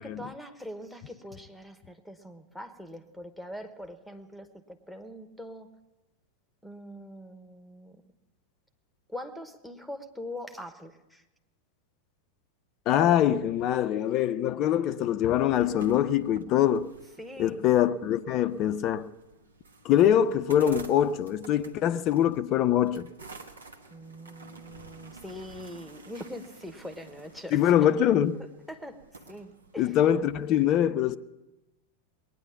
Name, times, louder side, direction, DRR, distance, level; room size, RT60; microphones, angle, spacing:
voice 1, 0.0-5.7 6.6-8.0 9.1-11.2 17.2-17.6 23.9-27.6 28.3-29.0 29.3-30.0, left 1 dB, ahead, 1.2 m, -42 dB
voice 2, 12.9-16.9 17.4-19.1 19.8-23.1 27.5-28.4 29.8-31.2, left 10 dB, 35° left, 0.5 m, -24 dB
sound 1, 15.2-30.5, right 3 dB, 70° right, 1.2 m, -50 dB
20.5 x 9.8 x 7.2 m
figure-of-eight pair, 90°, 0 cm